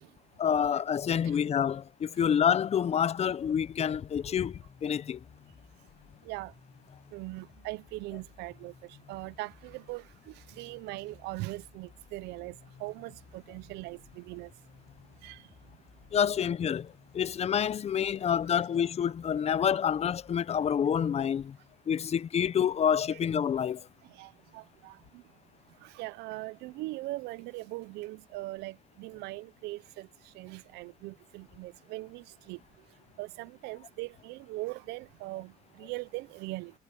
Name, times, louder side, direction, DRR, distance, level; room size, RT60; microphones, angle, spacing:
voice 1, 0.4-5.2 16.1-21.6 21.9-23.9, left 8 dB, 40° left, 0.7 m, -28 dB
sound 1, 2.5-18.6, left 15 dB, 75° left, 7.3 m, -61 dB
sound 2, 4.4-20.4, left 3 dB, 20° left, 4.1 m, -59 dB
voice 2, 7.1-8.7 9.1-14.5 15.2-15.4 24.1-25.2 25.8-30.1 30.3-32.6 33.2-36.7, right 20 dB, 90° right, 0.5 m, -40 dB
cardioid pair, 110°, 17 cm